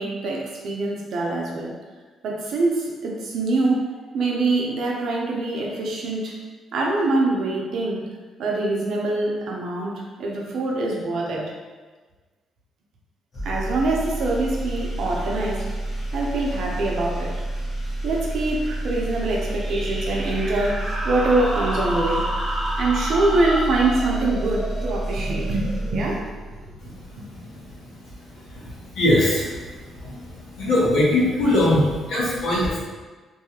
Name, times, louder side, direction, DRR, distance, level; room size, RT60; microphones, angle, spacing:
voice 1, 0.0-1.7 2.2-3.8 4.1-6.4 6.7-8.0 8.4-11.5 13.4-15.7 16.1-17.4 18.0-22.3 22.8-26.5 27.1-27.2, right 2 dB, 70° right, -2 dB, 0.6 m, -24 dB
sound 1, 13.3-26.7, right 1 dB, 45° left, 0.9 m, -29 dB
sound 2, 19.5-26.7, equal, 30° right, 0.5 m, -31 dB
voice 2, 28.3-29.6 29.9-32.8, left 1 dB, 80° left, -8 dB, 1.1 m, -21 dB
2.6 x 2.3 x 2.9 m, 1.4 s
cardioid pair, 90°, 0 cm